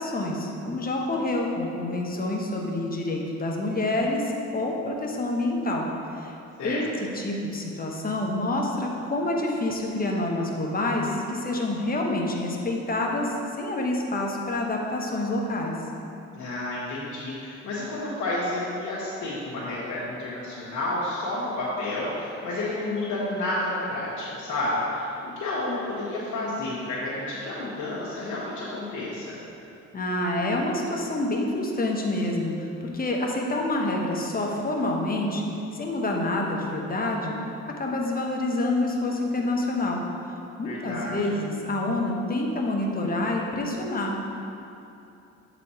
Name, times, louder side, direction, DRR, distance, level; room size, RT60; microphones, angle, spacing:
voice 1, 0.0-5.8 6.1-6.3 6.6-15.7 29.9-35.5 35.7-37.3 37.7-40.0 40.6-44.3, left 2 dB, 30° left, 0 dB, 1.0 m, -27 dB
voice 2, 16.3-29.4 40.6-41.1, left 2 dB, 70° left, -8 dB, 1.2 m, -30 dB
7.9 x 4.2 x 4.2 m, 2.8 s
cardioid pair, 90°, 30 cm